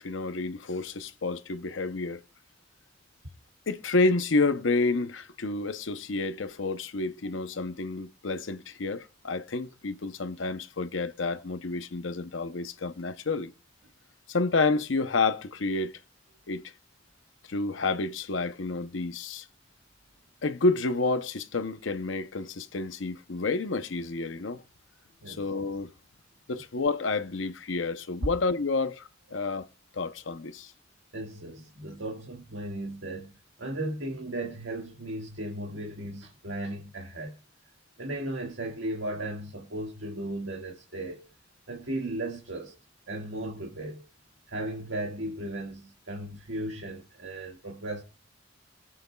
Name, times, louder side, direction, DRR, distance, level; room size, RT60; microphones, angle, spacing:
voice 1, 0.0-2.2 3.7-13.5 14.3-15.9 16.5-16.6 17.5-19.5 20.4-24.6 25.3-25.9 26.5-29.7 29.9-30.7, left 3 dB, 75° left, 0.8 m, -29 dB
voice 2, 31.1-33.3 33.6-37.4 38.0-41.3 41.7-42.7 43.1-44.0 44.5-48.0, right 1 dB, 80° right, 1.8 m, -36 dB
23.0 x 7.7 x 2.3 m
head